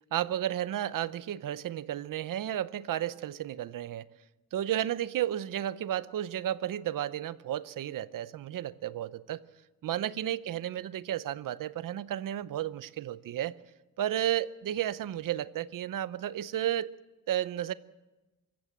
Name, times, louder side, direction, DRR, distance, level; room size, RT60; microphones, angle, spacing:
voice 1, 0.1-4.1 4.5-9.4 9.8-13.6 14.0-16.9 17.3-17.7, right 12 dB, 70° right, 0.8 m, -33 dB
25.5 x 15.0 x 7.5 m
cardioid pair, 125°, 34 cm